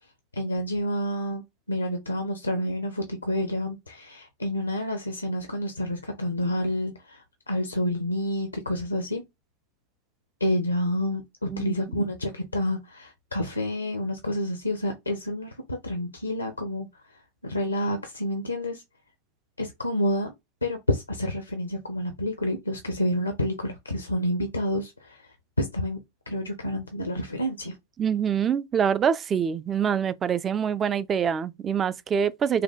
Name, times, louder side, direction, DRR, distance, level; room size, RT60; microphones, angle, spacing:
voice 1, 0.3-1.4 1.7-9.2 10.4-16.9 17.4-18.8 19.6-20.3 20.6-25.2 25.6-27.8, left 1 dB, 80° left, 0.6 m, -29 dB
voice 2, 11.5-12.0 28.0-32.6, right 7 dB, 25° right, 0.3 m, -25 dB
5.5 x 2.2 x 3.6 m
figure-of-eight pair, 90°, 0 cm